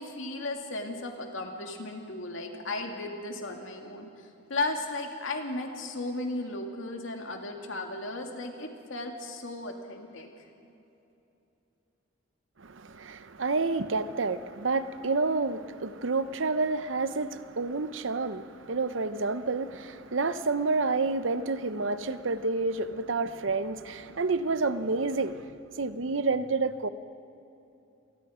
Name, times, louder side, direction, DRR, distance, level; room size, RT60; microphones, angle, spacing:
voice 1, 0.0-4.1 4.5-10.3, left 2 dB, 85° left, 3 dB, 2.3 m, -35 dB
voice 2, 12.9-25.4 25.8-26.9, right 3 dB, 80° right, 13 dB, 0.8 m, -29 dB
26.5 x 19.5 x 5.1 m, 2.9 s
head